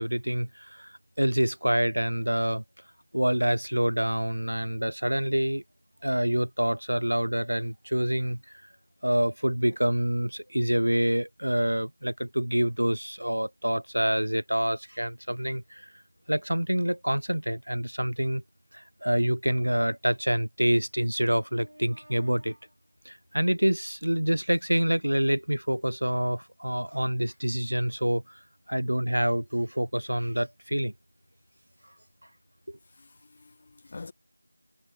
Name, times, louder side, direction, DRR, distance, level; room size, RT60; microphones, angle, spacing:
voice 1, 0.0-2.6 3.1-5.6 6.0-8.4 9.0-15.9 16.3-18.4 18.7-22.6 23.1-28.4 28.7-30.9 32.7-32.8, equal, 80° right, 0.5 m, -27 dB
voice 2, 33.0-34.1, left 3 dB, 25° left, 0.3 m, -46 dB
figure-of-eight pair, 175°, 0 cm